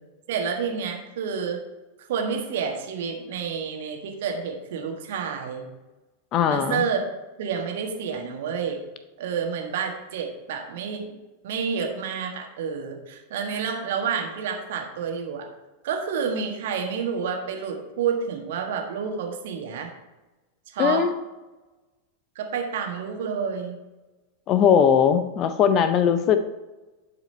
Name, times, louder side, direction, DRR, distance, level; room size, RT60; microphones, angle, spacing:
voice 1, 0.3-1.6 2.0-5.6 6.5-7.0 7.4-8.8 9.2-11.2 11.4-15.5 15.8-19.9 20.7-21.1 22.3-23.8, right 6 dB, 55° right, 2 dB, 1.5 m, -29 dB
voice 2, 6.3-6.8 20.8-21.1 24.5-26.4, left 8 dB, 35° left, 10 dB, 0.6 m, -19 dB
10.5 x 4.9 x 4.3 m, 1.1 s
figure-of-eight pair, 90°, 0 cm